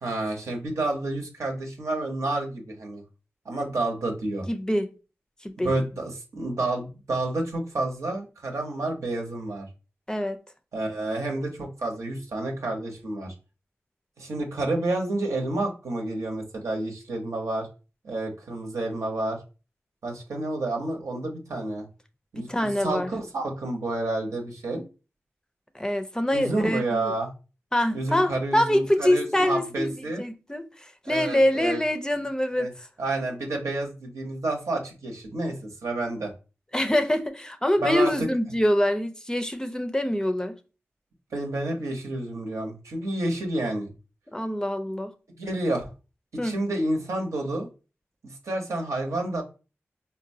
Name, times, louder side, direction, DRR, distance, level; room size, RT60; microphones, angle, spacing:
voice 1, 0.0-3.0 3.4-4.5 5.6-9.7 10.7-13.3 14.2-17.7 18.0-19.4 20.0-21.9 22.3-22.5 22.8-24.8 26.3-27.3 27.9-30.2 31.0-31.8 32.6-32.7 33.0-36.3 37.8-38.3 41.3-43.9 45.4-45.9 46.4-47.7 48.2-49.4, right 2 dB, 85° right, 0.8 m, -29 dB
voice 2, 4.5-4.9 5.4-5.7 10.1-10.4 22.4-23.1 25.7-27.1 27.7-29.9 30.2-30.7 31.1-32.7 36.7-40.5 44.3-45.1 46.4-46.6, left 1 dB, 15° left, 0.4 m, -25 dB
3.9 x 2.2 x 2.6 m
cardioid pair, 55°, 5 cm